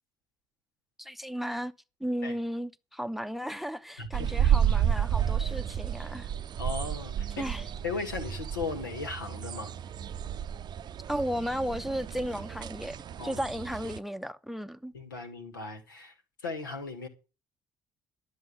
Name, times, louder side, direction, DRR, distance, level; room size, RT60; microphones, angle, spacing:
voice 1, 1.0-1.7 2.0-6.3 7.4-7.6 11.1-13.0 13.2-14.9, equal, ahead, 0.8 m, -34 dB
voice 2, 4.0-4.3 6.6-7.4 7.8-9.7 13.2-13.4 14.9-16.2 16.4-17.1, left 4 dB, 80° left, 1.9 m, -37 dB
sound 1, 4.1-14.0, right 9 dB, 40° right, 0.6 m, -31 dB
12.0 x 7.8 x 8.4 m
figure-of-eight pair, 50°, 11 cm